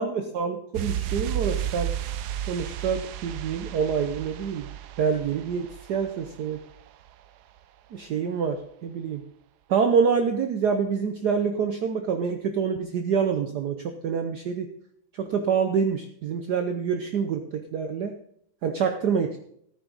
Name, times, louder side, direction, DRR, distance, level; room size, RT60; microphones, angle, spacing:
voice 1, 0.0-1.9 2.5-4.7 5.0-6.6 7.9-9.2 9.7-14.7 15.2-18.1 18.6-19.4, right 6 dB, 60° right, 6 dB, 1.2 m, -26 dB
sound 1, 0.7-7.3 7.5-7.6, right 11 dB, 80° right, 0.9 m, -33 dB
14.0 x 9.2 x 4.0 m, 0.71 s
omnidirectional pair, 2.3 m